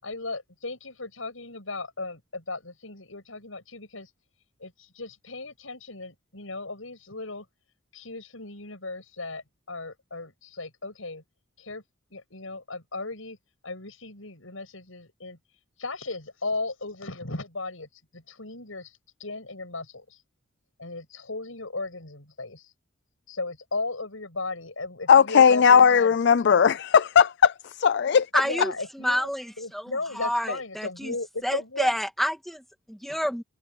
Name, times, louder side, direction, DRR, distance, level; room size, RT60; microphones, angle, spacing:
voice 1, 0.0-4.1 4.6-7.5 7.9-11.2 11.6-11.8 12.1-13.4 13.6-15.4 15.8-20.2 20.8-22.7 23.3-26.2 26.4-26.8 28.4-29.3 29.6-31.9, left 3 dB, 80° left, 6.6 m, -36 dB
voice 2, 25.1-28.3, left 7 dB, 55° left, 0.4 m, -18 dB
voice 3, 28.3-31.1 31.4-33.4, equal, ahead, 1.7 m, -29 dB
head